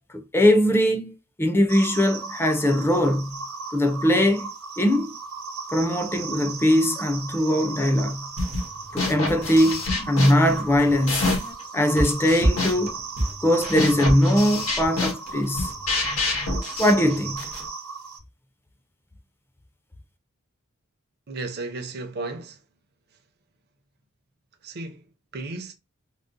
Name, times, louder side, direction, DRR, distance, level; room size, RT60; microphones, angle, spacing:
voice 1, 0.1-3.4 3.7-4.5 4.8-5.2 5.7-8.3 8.9-11.3 11.7-13.0 13.4-15.7 16.8-17.5, left 1 dB, 10° left, 0.5 m, -21 dB
sound 1, 1.7-18.2, right 4 dB, 75° right, 1.0 m, -36 dB
sound 2, 7.5-8.2 10.0-10.1 11.1-12.4, equal, 60° left, 1.0 m, -45 dB
sound 3, 8.4-8.7 9.0-11.6 12.0-17.7, left 2 dB, 80° left, 1.5 m, -27 dB
voice 2, 21.3-22.6 24.6-25.7, right 3 dB, 50° right, 0.6 m, -34 dB
3.7 x 2.0 x 2.6 m
head